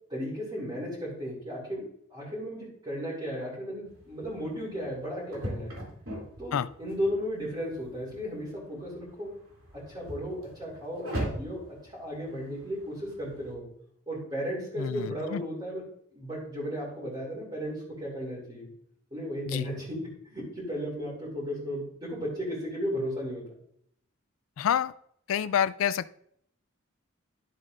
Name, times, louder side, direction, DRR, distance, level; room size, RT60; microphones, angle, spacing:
voice 1, 0.1-5.7 6.4-9.4 9.7-13.7 14.1-15.8 16.1-18.7 19.1-23.4, equal, 25° right, -6 dB, 2.9 m, -35 dB
sound 1, 3.8-13.5, right 1 dB, 80° right, 3.0 m, -41 dB
voice 2, 14.8-15.4 19.5-19.7 24.6-24.9 25.3-26.2, left 8 dB, 80° left, 16 dB, 0.3 m, -28 dB
12.0 x 7.5 x 2.6 m, 0.69 s
head